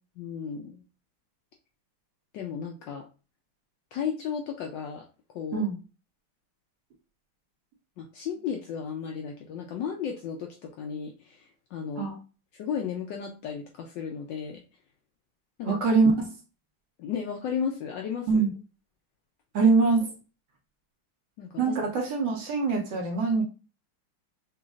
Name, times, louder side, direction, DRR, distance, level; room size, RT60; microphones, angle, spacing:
voice 1, 0.2-0.8 2.3-3.0 3.9-5.0 5.3-5.7 8.0-12.1 12.5-14.6 15.6-15.7 17.0-18.4 21.4-21.5, left 7 dB, 75° left, 2 dB, 1.1 m, -34 dB
voice 2, 15.7-16.3 18.3-18.5 19.5-20.1 21.6-23.4, right 4 dB, 60° right, 0 dB, 1.4 m, -23 dB
6.1 x 2.5 x 2.4 m, 0.33 s
omnidirectional pair, 2.4 m